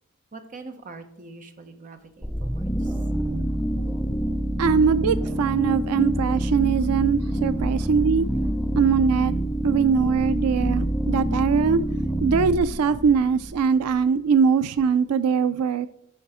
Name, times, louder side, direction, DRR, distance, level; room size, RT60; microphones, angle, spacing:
voice 1, 0.3-3.0, right 3 dB, 35° right, 0.9 m, -43 dB
sound 1, 2.2-14.0, right 1 dB, ahead, 0.4 m, -26 dB
voice 2, 4.6-8.3 8.8-9.4 9.6-11.8 12.2-15.9, right 6 dB, 90° right, 0.4 m, -21 dB
9.0 x 5.5 x 4.8 m
head